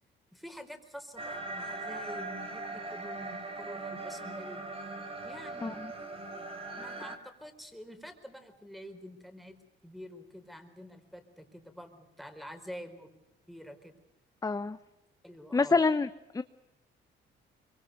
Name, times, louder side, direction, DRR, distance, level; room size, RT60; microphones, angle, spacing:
voice 1, 0.3-4.6 5.2-5.8 6.8-14.0 15.2-15.8, equal, ahead, 8 dB, 4.3 m, -47 dB
sound 1, 1.2-7.2, right 2 dB, 30° right, 3.5 m, -40 dB
voice 2, 14.4-14.8 15.5-16.1 16.3-16.4, left 4 dB, 15° left, 12 dB, 0.8 m, -26 dB
25.0 x 23.0 x 6.7 m, 0.95 s
cardioid pair, 90°, 20 cm